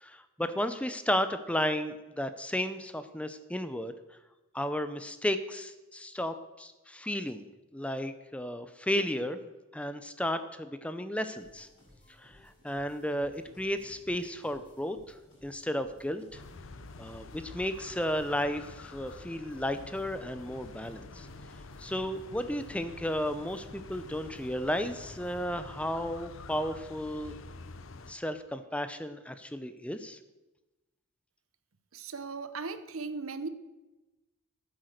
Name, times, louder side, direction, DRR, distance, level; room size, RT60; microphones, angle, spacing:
voice 1, 0.0-3.9 4.5-7.5 7.7-9.4 9.7-11.7 12.2-15.2 15.4-16.4 17.0-21.3 21.8-27.3 28.1-30.2, equal, 5° left, 11 dB, 0.6 m, -33 dB
sound 1, 11.3-25.9, equal, 25° left, 4.9 m, -59 dB
sound 2, 16.3-28.1, left 3 dB, 70° left, 0.7 m, -48 dB
voice 2, 31.9-33.5, right 4 dB, 90° right, 11 dB, 0.9 m, -37 dB
14.5 x 8.2 x 6.5 m, 1.1 s
head